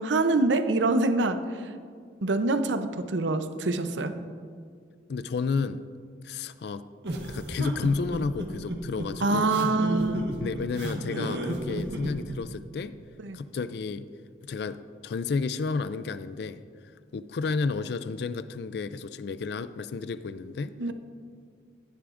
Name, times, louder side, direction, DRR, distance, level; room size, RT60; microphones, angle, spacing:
voice 1, 0.0-1.7 2.2-4.1 9.2-10.3 13.2-13.4 20.8-20.9, right 2 dB, 90° right, 9 dB, 0.7 m, -25 dB
voice 2, 5.1-5.8 6.2-6.8 7.3-9.6 10.4-12.9 13.3-14.1 14.4-16.6 17.1-20.7, left 4 dB, 60° left, 13 dB, 0.4 m, -31 dB
sound 1, 7.0-12.4, right 1 dB, 65° right, 1.4 m, -32 dB
15.5 x 10.0 x 2.5 m, 2.2 s
head